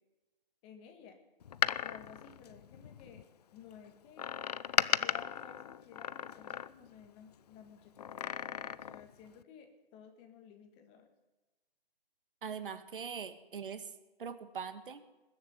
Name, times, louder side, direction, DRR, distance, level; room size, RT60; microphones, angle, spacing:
voice 1, 0.6-1.2 1.8-3.2 3.5-4.2 4.9-11.1, left 7 dB, 20° left, 5 dB, 1.7 m, -55 dB
Door, 1.4-3.2 4.2-7.0 8.0-9.1 9.4-9.5, left 9 dB, 45° left, 0.5 m, -36 dB
voice 2, 12.4-13.9 14.2-15.0, right 6 dB, 60° right, 11 dB, 1.6 m, -42 dB
21.0 x 7.1 x 9.4 m, 1.1 s
hypercardioid pair, 145°, 30 cm